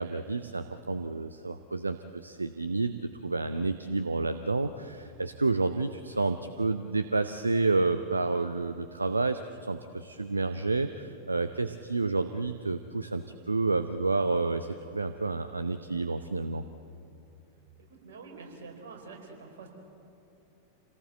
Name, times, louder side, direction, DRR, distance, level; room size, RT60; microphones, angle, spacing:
voice 1, 0.0-16.6, right 3 dB, 80° right, 10 dB, 0.7 m, -30 dB
voice 2, 17.8-19.7, right 4 dB, 60° right, 1 dB, 4.7 m, -47 dB
27.5 x 18.0 x 7.8 m, 2.7 s
figure-of-eight pair, 90°, 0 cm